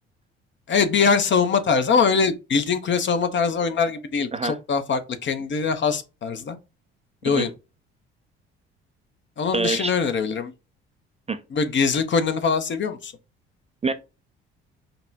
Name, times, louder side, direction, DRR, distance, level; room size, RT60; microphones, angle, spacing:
voice 1, 0.7-6.6 7.2-7.5 9.4-10.5 11.5-13.1, left 5 dB, 40° left, 0.7 m, -22 dB
voice 2, 9.5-9.9 11.3-11.4 13.8-13.9, right 4 dB, 20° right, 0.5 m, -25 dB
5.3 x 2.1 x 2.6 m
hypercardioid pair, 55°, 30 cm